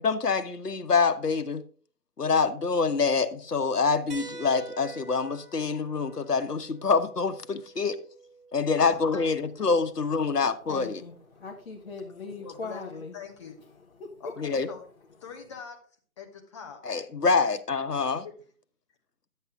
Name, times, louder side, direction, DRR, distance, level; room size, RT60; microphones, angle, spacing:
voice 1, 0.0-1.6 2.2-8.0 8.5-11.0 14.4-14.7 16.8-18.3, left 5 dB, 85° left, 1.3 m, -26 dB
sound 1, 4.1-9.2 10.7-10.8 12.5-12.6, right 3 dB, 80° right, 1.9 m, -47 dB
voice 2, 8.8-9.3 12.4-13.6 14.2-14.8 15.2-15.8 16.2-16.8, left 6 dB, 20° left, 1.2 m, -43 dB
voice 3, 10.3-13.2 13.7-14.2, left 4 dB, 40° left, 1.2 m, -41 dB
10.5 x 8.1 x 3.7 m
figure-of-eight pair, 155°, 46 cm